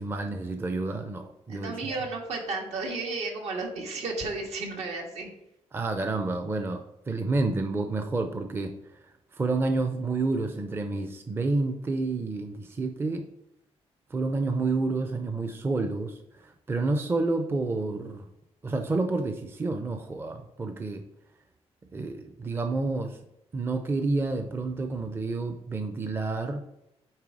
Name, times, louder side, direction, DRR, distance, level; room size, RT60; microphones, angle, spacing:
voice 1, 0.0-2.0 5.7-8.7 9.3-13.2 14.1-18.3 18.6-21.0 21.9-23.2 23.5-26.6, right 3 dB, 20° right, 6 dB, 0.5 m, -29 dB
voice 2, 1.5-5.3, right 3 dB, 75° right, 1 dB, 1.7 m, -33 dB
8.9 x 3.5 x 4.8 m, 0.83 s
cardioid pair, 150°, 11 cm